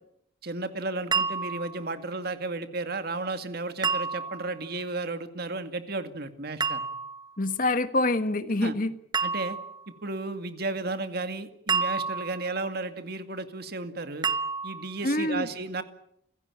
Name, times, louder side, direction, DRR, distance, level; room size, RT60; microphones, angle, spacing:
voice 1, 0.4-6.9 8.6-8.7 9.2-9.6 10.0-14.3 14.6-15.8, right 3 dB, 55° right, 9 dB, 2.2 m, -33 dB
sound 1, 1.1-1.8 3.8-4.5 6.6-7.3 9.1-9.8 11.7-12.6 14.2-15.0, right 5 dB, 25° right, 0.9 m, -29 dB
voice 2, 7.4-8.9 15.0-15.5, left 2 dB, 45° left, 11 dB, 1.4 m, -26 dB
29.5 x 16.5 x 8.7 m, 0.75 s
head